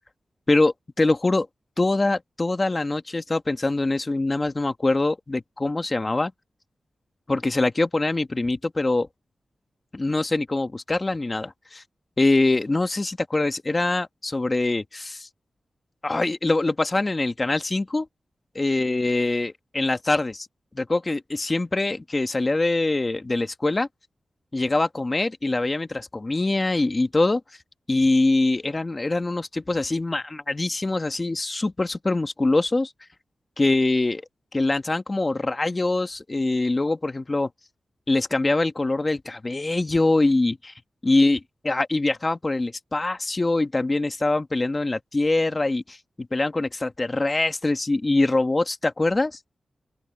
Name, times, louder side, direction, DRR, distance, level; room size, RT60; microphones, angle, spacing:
voice 1, 0.5-1.5 1.8-6.3 7.3-9.1 9.9-11.8 12.2-15.3 16.0-18.1 18.5-20.5 20.7-23.9 24.5-27.4 27.9-32.9 33.6-34.2 34.5-37.5 38.1-40.7 41.0-49.4, left 2 dB, 30° left, 1.6 m, -23 dB
open air
wide cardioid pair, 90°, 0 cm